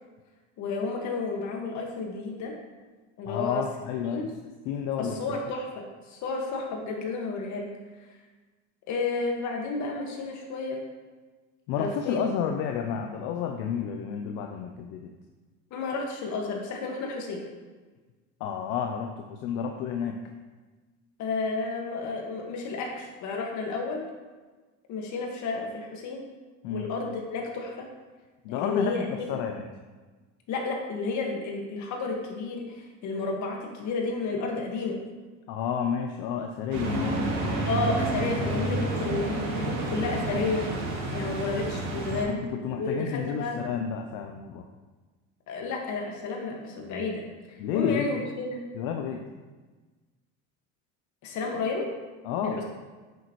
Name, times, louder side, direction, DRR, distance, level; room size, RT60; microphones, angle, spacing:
voice 1, 0.6-2.6 3.2-3.6 4.0-4.3 5.0-7.7 8.9-10.8 11.8-12.3 15.7-17.4 21.2-24.0 24.9-26.3 26.7-27.9 28.5-29.3 30.5-35.0 37.7-40.8 41.1-42.4 42.7-43.6 45.5-47.2 47.5-48.6 51.2-51.9 52.4-52.6, left 3 dB, 60° left, 1 dB, 1.9 m, -31 dB
voice 2, 3.3-4.3 4.7-5.1 11.7-15.1 18.4-20.2 26.6-26.9 28.4-28.9 29.3-29.7 35.5-37.4 42.3-44.7 47.6-48.1 48.7-49.2 52.2-52.6, left 7 dB, 75° left, 3 dB, 0.7 m, -31 dB
sound 1, 36.7-42.2, right 2 dB, 80° right, 2.4 m, -29 dB
8.4 x 6.9 x 3.2 m, 1.3 s
supercardioid pair, 105°, 33 cm